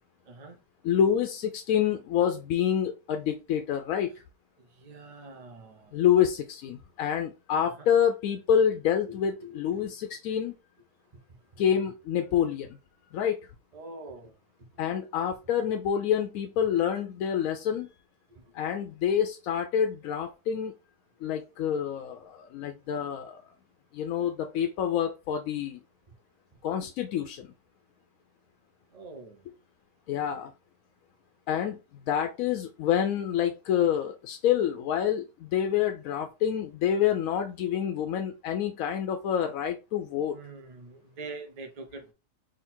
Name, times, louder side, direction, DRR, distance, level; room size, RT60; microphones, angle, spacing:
voice 1, 0.3-0.6 4.6-6.0 7.8-8.0 9.1-9.9 13.7-14.3 18.3-18.4 28.9-29.5 40.3-42.1, right 2 dB, 35° right, 0.7 m, -45 dB
voice 2, 0.8-4.1 5.9-10.5 11.6-12.8 13.1-13.5 14.8-17.9 18.5-20.7 21.2-23.4 23.9-25.8 26.6-27.5 30.1-30.5 31.5-31.8 32.1-40.3, left 9 dB, 85° left, 1.0 m, -27 dB
3.8 x 2.8 x 4.3 m
omnidirectional pair, 1.4 m